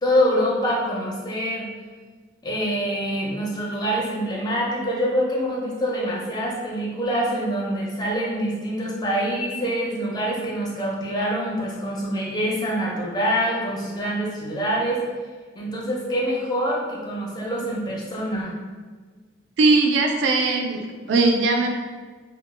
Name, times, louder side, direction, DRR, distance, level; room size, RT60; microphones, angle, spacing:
voice 1, 0.0-1.7 2.4-15.0 15.5-18.5, equal, 20° left, -4 dB, 0.4 m, -25 dB
voice 2, 19.6-21.7, right 3 dB, 70° right, 3 dB, 0.3 m, -20 dB
2.2 x 2.1 x 3.1 m, 1.4 s
head